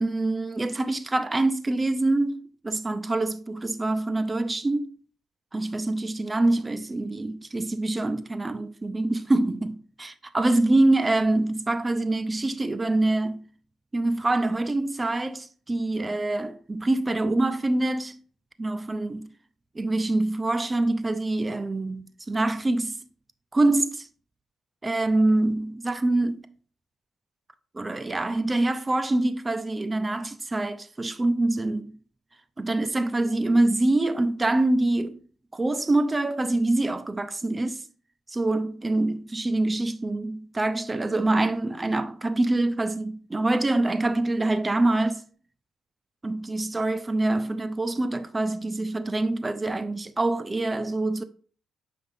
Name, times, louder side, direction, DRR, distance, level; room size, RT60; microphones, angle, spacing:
voice 1, 0.0-4.9 5.5-13.5 13.9-18.2 18.6-19.3 19.7-23.0 23.5-24.1 24.8-26.5 27.7-32.0 32.6-35.2 35.5-37.8 38.3-45.2 46.2-51.2, right 2 dB, 20° right, 0.7 m, -25 dB
9.4 x 5.6 x 2.7 m
cardioid pair, 90°, 0 cm